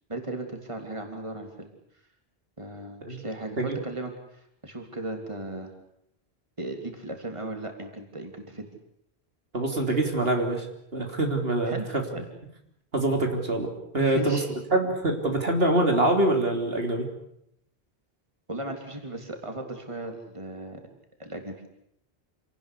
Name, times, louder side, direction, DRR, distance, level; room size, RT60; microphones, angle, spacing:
voice 1, 0.1-1.7 2.6-5.7 6.6-8.7 11.6-12.3 14.0-14.5 18.5-20.8 21.2-21.5, right 1 dB, 30° right, 4 dB, 3.4 m, -36 dB
voice 2, 9.5-10.7 10.9-11.8 12.9-13.7 13.9-14.4 14.7-17.1, right 2 dB, 65° right, 3 dB, 3.7 m, -24 dB
27.5 x 18.5 x 8.5 m, 0.75 s
omnidirectional pair, 1.1 m